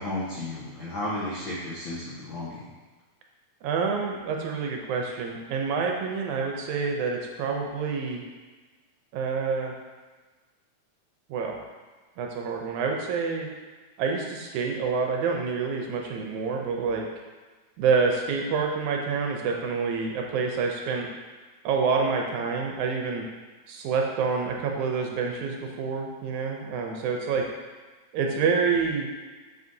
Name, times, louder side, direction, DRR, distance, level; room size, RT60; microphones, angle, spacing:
voice 1, 0.0-2.7, left 1 dB, 70° left, -9 dB, 1.1 m, -33 dB
voice 2, 3.6-8.2 9.1-9.7 11.3-11.6 12.2-13.5 14.0-17.1 17.8-21.1 21.6-23.3 23.7-27.4 28.1-29.1, right 5 dB, 75° right, 1 dB, 2.0 m, -27 dB
7.8 x 5.0 x 2.7 m, 1.3 s
omnidirectional pair, 3.7 m